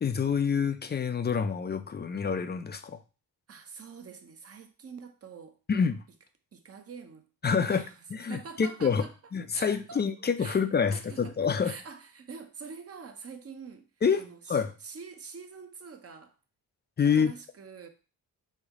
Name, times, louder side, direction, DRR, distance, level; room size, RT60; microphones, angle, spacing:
voice 1, 0.0-3.0 5.7-6.0 7.4-7.8 8.1-9.0 9.3-11.7 14.0-14.2 14.5-14.7 17.0-17.3, left 6 dB, 25° left, 0.4 m, -27 dB
voice 2, 3.5-5.6 6.5-9.1 9.5-10.0 10.4-10.6 10.9-11.4 11.6-13.9 14.2-16.3 17.0-17.9, right 5 dB, 35° right, 0.7 m, -45 dB
3.3 x 2.2 x 3.6 m
supercardioid pair, 45°, 42 cm